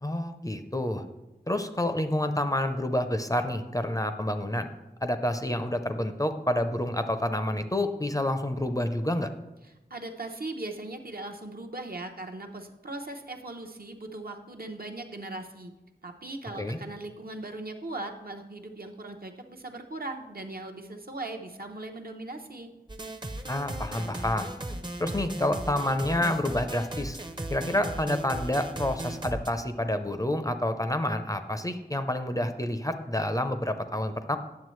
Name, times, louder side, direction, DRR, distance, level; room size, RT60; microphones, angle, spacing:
voice 1, 0.0-1.0 1.5-4.7 5.0-9.3 16.6-16.8 23.5-24.5 25.0-27.2 27.5-34.4, left 1 dB, 20° left, 7 dB, 0.5 m, -28 dB
voice 2, 9.9-15.7 16.0-22.7, right 2 dB, 60° right, 4 dB, 0.8 m, -39 dB
sound 1, 22.9-29.5, right 1 dB, 25° right, 0.6 m, -37 dB
9.4 x 6.9 x 3.1 m, 1.0 s
wide cardioid pair, 50°, 17 cm